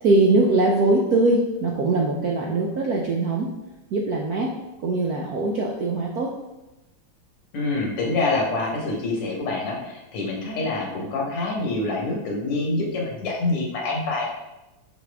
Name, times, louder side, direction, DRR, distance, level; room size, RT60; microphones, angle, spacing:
voice 1, 0.0-3.5 3.9-4.5 4.8-6.3, right 2 dB, 70° right, -1 dB, 0.9 m, -21 dB
voice 2, 7.5-14.3, left 2 dB, 85° left, -1 dB, 2.4 m, -26 dB
6.0 x 5.9 x 3.5 m, 1.0 s
omnidirectional pair, 2.4 m